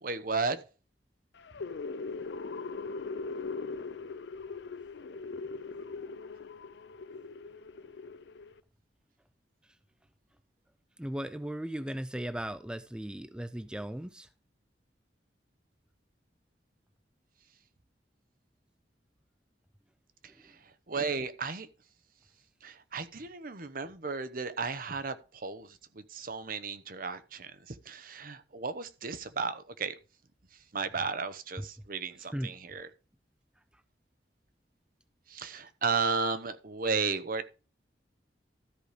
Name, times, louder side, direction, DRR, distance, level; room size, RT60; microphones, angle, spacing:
voice 1, 0.0-0.6 20.4-20.5 20.9-21.7 22.6-30.0 30.7-32.9 35.3-37.5, right 4 dB, 50° right, 0.9 m, -34 dB
sound 1, 1.4-8.6, left 4 dB, 75° left, 0.5 m, -40 dB
voice 2, 11.0-14.3 20.4-20.5 31.6-31.7 32.2-32.5, right 1 dB, 5° right, 0.4 m, -37 dB
13.0 x 4.8 x 5.1 m
head